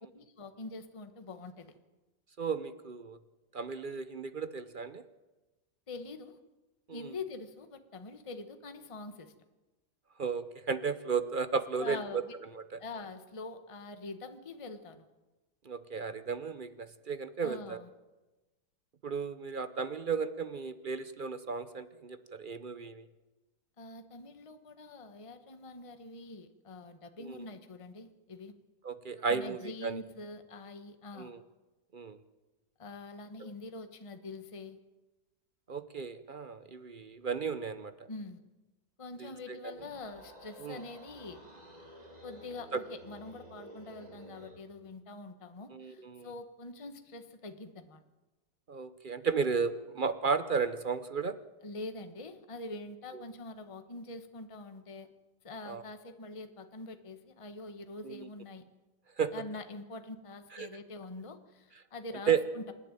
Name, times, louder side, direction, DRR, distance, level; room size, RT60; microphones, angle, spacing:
voice 1, 0.1-1.8 5.9-6.4 6.9-9.3 11.8-12.3 12.8-15.1 17.4-17.9 23.8-28.5 29.3-31.3 32.8-34.8 38.1-38.4 39.0-41.4 42.2-48.0 51.6-55.1 55.4-58.6 59.3-62.7, left 3 dB, 20° left, 8 dB, 1.1 m, -45 dB
voice 2, 2.4-3.2 3.5-5.0 6.9-7.1 10.2-12.2 12.5-12.8 15.6-17.8 19.0-23.1 27.2-27.4 28.8-30.0 31.2-31.4 31.9-32.2 33.4-33.5 35.7-37.9 39.2-39.7 40.6-40.8 42.7-42.8 45.7-46.3 48.7-51.4 55.7-55.8 58.0-58.3 59.2-59.3 60.5-60.7 62.3-62.4, right 5 dB, 50° right, 12 dB, 0.6 m, -34 dB
sound 1, 39.7-44.6, right 1 dB, 20° right, 3.1 m, -52 dB
27.0 x 11.0 x 9.2 m, 1.1 s
omnidirectional pair, 1.9 m